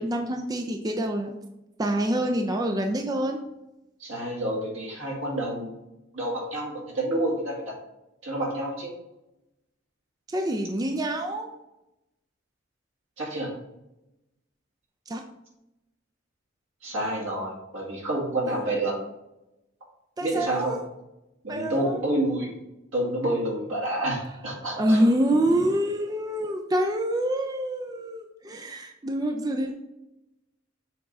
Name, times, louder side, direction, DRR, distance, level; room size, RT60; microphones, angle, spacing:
voice 1, 0.0-1.4 1.8-3.4 10.3-11.5 15.1-15.2 18.5-18.6 20.2-20.8 21.5-22.0 24.8-29.7, right 1 dB, 20° right, 4 dB, 0.4 m, -26 dB
voice 2, 4.0-5.7 6.1-7.6 8.2-8.9 13.2-13.5 16.8-18.9 20.2-20.8 21.4-22.5 22.9-25.0, right 1 dB, 90° right, -2 dB, 2.2 m, -28 dB
7.0 x 3.6 x 4.1 m, 0.92 s
head